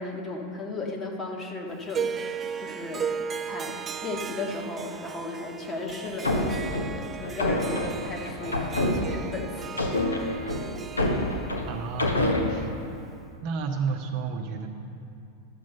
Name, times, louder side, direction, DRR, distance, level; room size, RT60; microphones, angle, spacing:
voice 1, 0.0-10.2, left 3 dB, 20° left, 1 dB, 1.3 m, -36 dB
Harp, 1.9-13.2, right 7 dB, 20° right, 0.4 m, -37 dB
sound 1, 6.0-9.4 9.8-12.4, left 1 dB, 80° left, 1.0 m, -27 dB
voice 2, 11.7-12.7 13.4-14.7, right 5 dB, 45° right, 3 dB, 0.9 m, -31 dB
11.0 x 7.5 x 5.5 m, 2.5 s
figure-of-eight pair, 90°, 0 cm